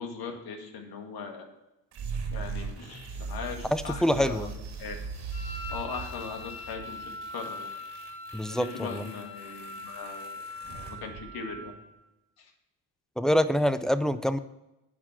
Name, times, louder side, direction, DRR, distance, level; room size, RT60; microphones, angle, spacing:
voice 1, 0.0-1.4 2.3-4.4 4.8-5.0 5.7-7.0 7.3-7.7 8.5-10.4 10.7-11.7 12.4-12.5, left 5 dB, 60° left, 3 dB, 2.0 m, -39 dB
sound 1, 1.9-11.9, right 5 dB, 65° right, 2.5 m, -40 dB
voice 2, 3.6-4.5 8.3-9.1 13.2-14.4, equal, ahead, 13 dB, 0.4 m, -26 dB
Wind instrument woodwind instrument, 5.3-11.9, left 3 dB, 90° left, 2.5 m, -42 dB
10.0 x 4.7 x 7.3 m, 0.93 s
supercardioid pair, 85°, 42 cm